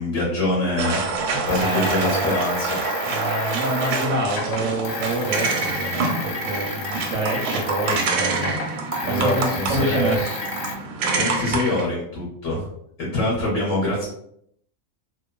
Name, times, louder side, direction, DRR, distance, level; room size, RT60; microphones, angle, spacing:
voice 1, 0.0-2.8 9.0-10.2 11.1-12.7 13.0-14.0, left 2 dB, 55° left, -8 dB, 1.3 m, -24 dB
sound 1, 0.8-11.9, right 4 dB, 85° right, 1.1 m, -27 dB
voice 2, 1.3-2.3 3.1-8.5 9.0-10.4, right 1 dB, 70° right, -3 dB, 0.8 m, -27 dB
sound 2, 1.5-8.1 8.4-10.8, left 3 dB, 70° left, 0.9 m, -32 dB
3.0 x 2.2 x 2.2 m, 0.71 s
omnidirectional pair, 1.6 m